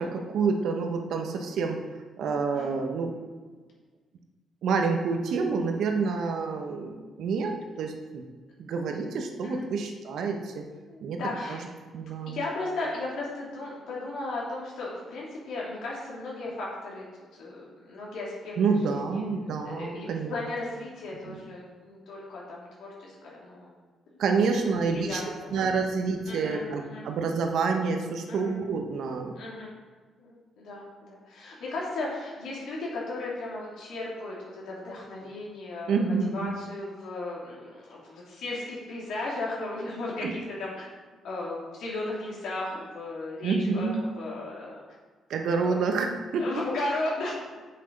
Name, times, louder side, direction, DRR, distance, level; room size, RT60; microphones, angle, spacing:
voice 1, 0.0-1.8 2.2-3.1 4.6-8.2 8.6-10.6 11.0-11.2 11.5-11.6 11.9-12.4 18.6-20.3 21.3-21.4 24.2-25.2 25.5-29.4 35.9-36.5 40.2-40.3 43.4-44.0 45.3-46.5, right 4 dB, 75° right, 4 dB, 1.2 m, -28 dB
voice 2, 10.9-11.6 12.3-17.0 17.4-23.7 24.1-25.5 26.3-27.0 28.3-28.6 29.3-29.7 30.2-40.9 41.2-43.9 44.2-44.8 45.6-45.8 46.4-47.4, left 2 dB, 75° left, -5 dB, 3.1 m, -36 dB
7.6 x 6.9 x 5.3 m, 1.4 s
cardioid pair, 90°, 0 cm